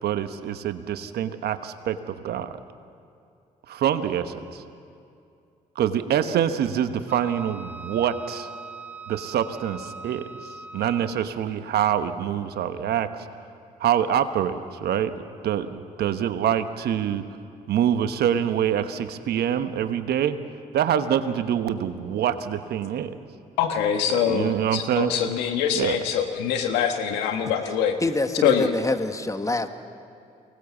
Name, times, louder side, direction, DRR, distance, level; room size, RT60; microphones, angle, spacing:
voice 1, 0.0-2.5 3.7-4.6 5.8-8.5 9.1-10.3 10.7-13.1 13.8-15.1 15.4-17.2 17.7-20.4 20.7-23.2 24.3-25.1 25.7-26.0, right 9 dB, 70° right, 10 dB, 1.1 m, -25 dB
Wind instrument woodwind instrument, 7.1-11.3, right 4 dB, 10° right, 1.7 m, -41 dB
voice 2, 23.6-28.0 28.4-28.7, left 8 dB, 85° left, 6 dB, 1.5 m, -24 dB
voice 3, 28.0-29.7, left 2 dB, 20° left, 8 dB, 1.5 m, -26 dB
24.0 x 18.5 x 7.2 m, 2.5 s
supercardioid pair, 55°, 17 cm